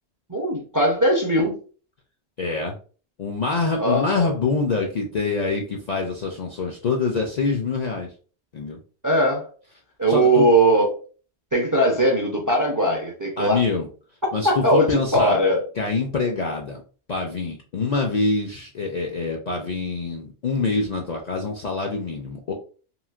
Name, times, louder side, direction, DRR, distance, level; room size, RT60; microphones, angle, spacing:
voice 1, 0.3-1.6 3.8-4.1 9.0-9.5 10.0-10.9 11.5-13.6 14.4-15.7, right 1 dB, 25° right, 0 dB, 0.4 m, -19 dB
voice 2, 2.4-2.7 3.2-8.1 8.5-8.8 10.1-10.5 13.4-13.9 14.3-15.4 15.8-16.8 17.1-22.5, left 4 dB, 55° left, 1 dB, 0.5 m, -25 dB
3.1 x 2.8 x 2.4 m, 0.39 s
omnidirectional pair, 1.1 m